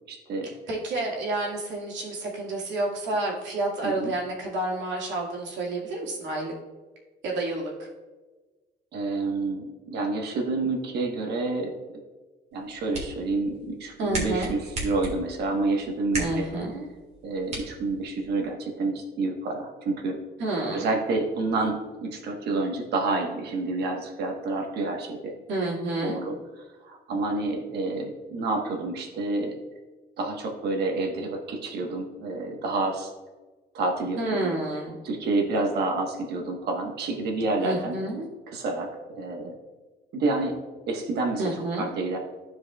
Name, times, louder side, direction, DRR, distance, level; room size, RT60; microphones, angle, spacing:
voice 1, 0.1-0.5 3.8-4.1 8.9-11.7 12.5-16.4 17.2-20.2 20.7-25.3 26.0-26.3 26.8-29.5 30.2-33.1 33.7-34.5 35.0-37.9 38.5-39.5 40.1-40.5 40.9-42.2, right 3 dB, 65° right, 2 dB, 1.3 m, -29 dB
voice 2, 0.7-6.5 7.2-7.9 14.0-14.5 16.2-16.9 20.4-20.9 25.5-26.2 34.2-35.0 37.6-38.3 41.4-41.9, right 2 dB, 90° right, -2 dB, 2.1 m, -29 dB
sound 1, 12.5-18.5, right 2 dB, 35° right, 1.8 m, -38 dB
13.5 x 4.7 x 2.3 m, 1.3 s
cardioid pair, 170°, 18 cm